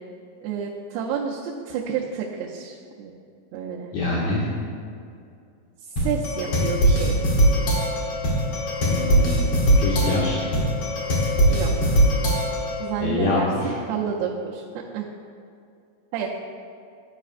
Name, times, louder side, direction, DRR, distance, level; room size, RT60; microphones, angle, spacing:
voice 1, 0.4-3.1 3.5-3.9 5.9-7.2 11.5-12.0 12.8-15.1 16.1-16.3, right 7 dB, 85° right, -5 dB, 2.6 m, -30 dB
voice 2, 3.9-4.5 8.8-10.4 13.0-13.8, left 2 dB, 85° left, -5 dB, 1.8 m, -25 dB
sound 1, 6.0-12.8, right 1 dB, 65° left, 1.4 m, -21 dB
12.0 x 5.0 x 2.4 m, 2.4 s
omnidirectional pair, 4.6 m